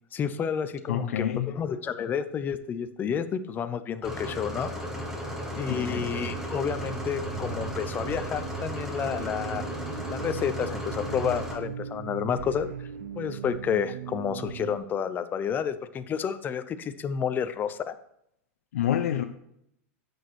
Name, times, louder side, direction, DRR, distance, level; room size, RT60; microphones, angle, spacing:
voice 1, 0.1-4.7 5.5-9.6 10.1-12.9 13.2-17.9, left 7 dB, 25° left, 11 dB, 0.7 m, -30 dB
voice 2, 0.9-1.5 5.7-6.1 18.7-19.2, left 11 dB, 80° left, 6 dB, 0.7 m, -27 dB
sound 1, 4.0-11.6, equal, 5° right, 1.8 m, -35 dB
sound 2, 5.7-14.8, right 10 dB, 75° right, 0.6 m, -39 dB
9.3 x 6.3 x 4.6 m, 0.76 s
hypercardioid pair, 125°, 8 cm